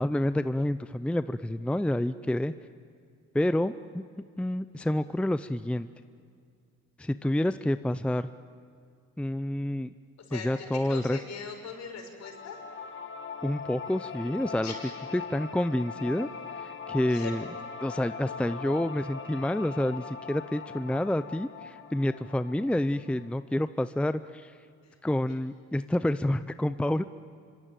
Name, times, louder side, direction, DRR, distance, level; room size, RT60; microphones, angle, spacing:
voice 1, 0.0-2.5 3.3-4.0 4.4-5.9 7.0-8.3 9.2-9.9 10.3-11.2 13.4-14.7 15.1-16.3 16.6-17.4 17.8-24.5 25.0-27.0, left 1 dB, 5° left, 12 dB, 0.6 m, -28 dB
voice 2, 10.9-12.6 14.6-14.9 17.1-17.3 24.8-24.9, left 5 dB, 60° left, 4 dB, 5.8 m, -40 dB
sound 1, 12.2-23.3, left 5 dB, 40° left, 2.0 m, -41 dB
26.0 x 25.0 x 9.1 m, 2.3 s
cardioid pair, 90°, 30 cm